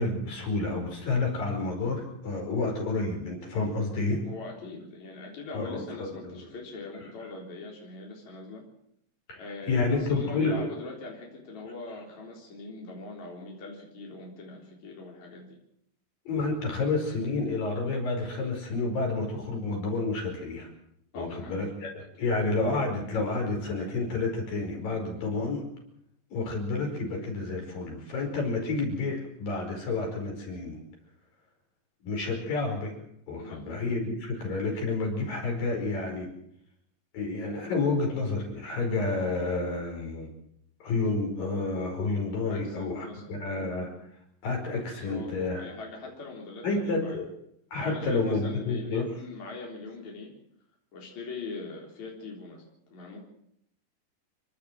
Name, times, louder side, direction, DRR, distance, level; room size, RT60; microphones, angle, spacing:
voice 1, 0.0-4.2 5.5-6.4 9.3-10.7 16.3-20.7 21.1-25.6 26.3-30.8 32.0-32.9 33.3-36.3 37.1-40.3 40.8-43.9 44.4-45.7 46.6-47.3 47.7-49.1, left 3 dB, 75° left, 1 dB, 6.7 m, -30 dB
voice 2, 4.3-8.6 9.4-15.6 21.1-21.6 22.0-22.3 33.4-33.7 42.5-43.5 44.8-47.2 47.8-50.3 50.9-52.6 52.9-53.2, left 3 dB, 55° left, -1 dB, 5.2 m, -41 dB
30.0 x 12.0 x 7.6 m, 0.73 s
omnidirectional pair, 4.0 m